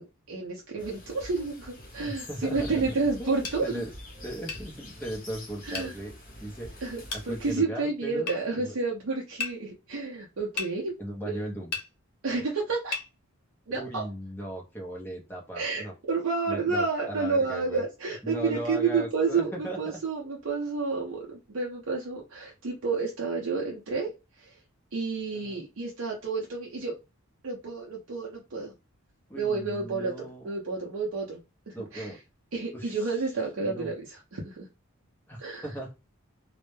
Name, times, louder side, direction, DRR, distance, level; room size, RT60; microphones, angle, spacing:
voice 1, 0.0-3.8 5.6-5.9 6.8-11.0 11.2-11.4 12.2-12.9 13.7-14.0 15.6-24.6 24.9-27.0 27.4-28.7 29.4-30.1 30.4-31.4 31.7-32.1 32.5-34.7 35.4-35.7, right 4 dB, 65° right, -2 dB, 0.5 m, -30 dB
sound 1, 0.8-7.6, left 1 dB, 40° left, 0.8 m, -45 dB
voice 2, 2.0-2.9 3.2-3.9 4.2-6.1 6.4-8.7 11.0-11.7 13.7-15.9 16.5-17.8 18.2-20.0 25.3-25.6 28.5-28.6 29.3-30.5 31.7-32.2 32.7-33.2 33.6-33.9 35.3-35.9, right 1 dB, 10° left, -1 dB, 0.5 m, -38 dB
sound 2, 3.4-3.6 4.5-4.7 5.7-5.9 7.1-7.3 8.3-8.4 9.4-9.6 10.6-10.7 11.7-11.9 12.9-13.1, left 4 dB, 85° left, 0.7 m, -33 dB
2.1 x 2.0 x 3.0 m, 0.27 s
head